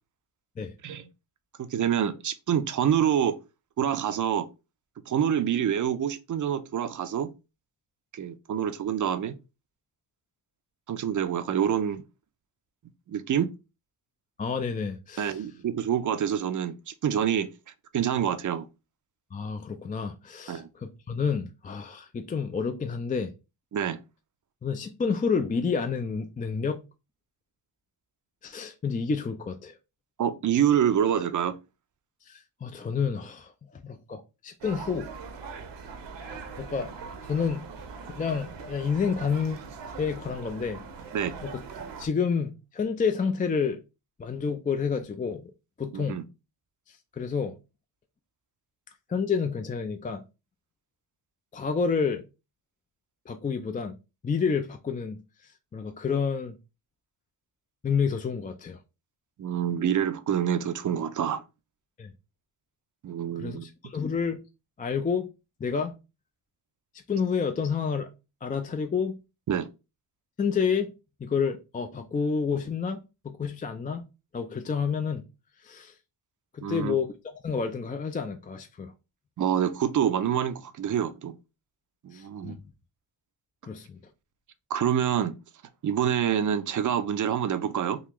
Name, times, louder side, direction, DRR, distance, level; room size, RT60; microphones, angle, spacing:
voice 1, 1.6-3.4 3.8-4.5 5.1-7.3 8.1-9.4 10.9-12.0 13.1-13.5 15.2-17.5 17.9-18.7 20.5-20.7 23.7-24.0 30.2-31.5 41.1-41.3 45.9-46.2 59.4-61.4 63.0-63.7 69.5-69.7 76.6-77.0 79.4-81.4 82.0-82.6 84.7-85.3 85.8-88.0, right 9 dB, 40° right, 0.5 m, -26 dB
voice 2, 14.4-15.4 19.3-23.3 24.6-26.8 28.4-29.8 32.2-35.1 36.6-36.9 37.2-37.7 38.2-39.6 40.0-40.8 41.4-41.6 42.0-43.8 44.2-45.5 45.8-46.2 46.9-47.6 49.1-50.2 51.5-52.2 53.3-54.0 54.2-56.6 57.8-58.8 62.0-62.1 63.4-64.4 64.8-65.3 65.6-66.0 67.1-68.1 68.4-69.2 70.4-70.9 71.2-74.1 74.3-75.3 75.6-75.9 76.5-77.1 77.4-78.9 82.1-82.6 83.6-84.0, left 6 dB, 20° left, 0.3 m, -29 dB
sound 1, 34.6-42.1, right 5 dB, 60° right, 0.8 m, -41 dB
3.8 x 2.4 x 2.9 m
cardioid pair, 65°, 48 cm